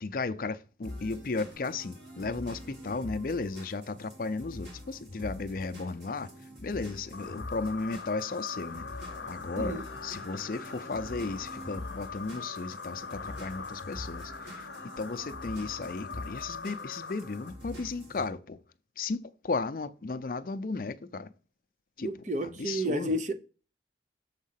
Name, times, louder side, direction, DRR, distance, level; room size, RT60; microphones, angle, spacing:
voice 1, 0.0-6.3 6.6-8.9 9.3-14.6 15.0-18.6 19.0-21.3 22.0-22.2 22.4-23.2, left 3 dB, 50° left, 0.5 m, -35 dB
sound 1, 0.8-18.3, left 1 dB, 80° right, 2.9 m, -45 dB
sound 2, 7.1-17.9, left 5 dB, 85° left, 0.8 m, -42 dB
voice 2, 22.0-23.3, equal, 45° right, 0.6 m, -31 dB
7.4 x 3.6 x 5.7 m
head